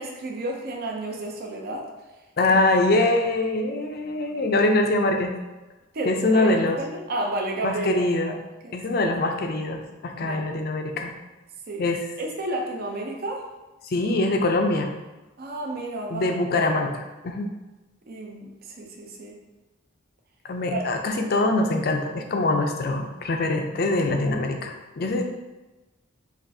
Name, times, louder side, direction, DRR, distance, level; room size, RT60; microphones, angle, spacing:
voice 1, 0.0-1.9 2.5-2.6 5.9-8.3 8.6-8.8 10.2-10.5 11.7-11.8 12.2-13.5 15.4-16.3 18.1-19.4 20.7-20.8, right 2 dB, 50° right, 0 dB, 0.5 m, -31 dB
voice 2, 2.4-5.4 6.1-6.8 7.6-8.4 8.7-11.1 11.8-12.1 13.8-14.9 16.1-17.5 20.4-25.2, left 2 dB, 50° left, 4 dB, 0.4 m, -23 dB
5.9 x 2.4 x 2.7 m, 1.1 s
head